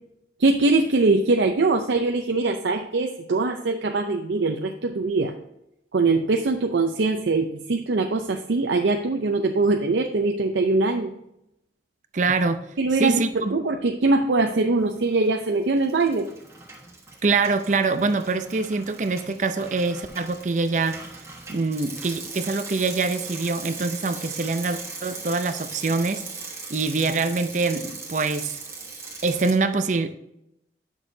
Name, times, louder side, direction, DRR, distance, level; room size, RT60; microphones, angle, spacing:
voice 1, 0.4-5.3 5.9-11.1 12.8-13.2 13.5-16.3, right 3 dB, 90° right, 4 dB, 0.6 m, -22 dB
voice 2, 12.1-12.6 13.0-13.6 17.2-21.0 21.5-26.2 26.7-28.6 29.2-30.1, right 3 dB, 45° right, 10 dB, 0.5 m, -24 dB
Bicycle, 15.1-15.5 15.8-29.5, right 4 dB, 15° right, 1.3 m, -39 dB
9.8 x 6.3 x 2.7 m, 0.83 s
head